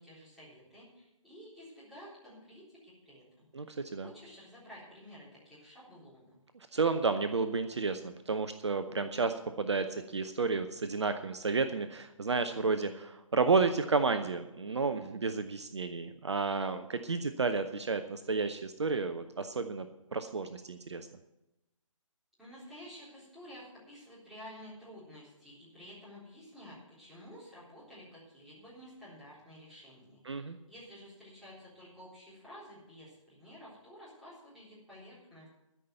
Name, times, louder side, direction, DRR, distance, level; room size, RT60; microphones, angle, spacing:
voice 1, 0.0-3.5 4.0-6.4 22.4-35.5, equal, ahead, -11 dB, 3.9 m, -52 dB
voice 2, 3.5-4.1 6.7-19.9 20.1-21.1 30.2-30.6, right 4 dB, 55° right, 9 dB, 0.7 m, -31 dB
13.0 x 5.6 x 9.2 m, 0.94 s
figure-of-eight pair, 145°, 17 cm